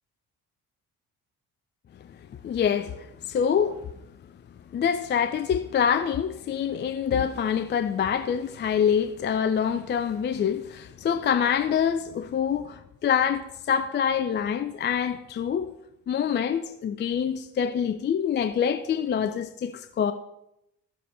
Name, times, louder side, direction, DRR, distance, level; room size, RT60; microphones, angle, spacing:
voice 1, 2.4-3.8 4.7-15.7 16.1-20.1, left 8 dB, 25° left, 0.4 m, -26 dB
14.5 x 6.6 x 3.2 m
figure-of-eight pair, 40°, 49 cm